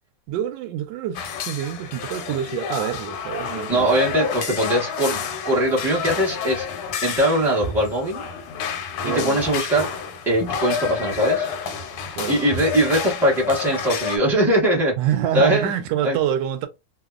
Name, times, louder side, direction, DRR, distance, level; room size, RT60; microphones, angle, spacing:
voice 1, 0.3-3.9 9.0-9.4 12.2-12.4 15.0-16.7, right 10 dB, 75° right, 1.1 m, -26 dB
sound 1, 1.1-14.2, left 6 dB, 80° left, 1.4 m, -29 dB
voice 2, 3.7-6.7 7.0-8.2 9.0-9.9 10.3-11.5 12.3-14.9 15.3-15.7 16.0-16.2, right 1 dB, 5° right, 0.3 m, -21 dB
3.4 x 2.0 x 2.3 m
omnidirectional pair, 2.2 m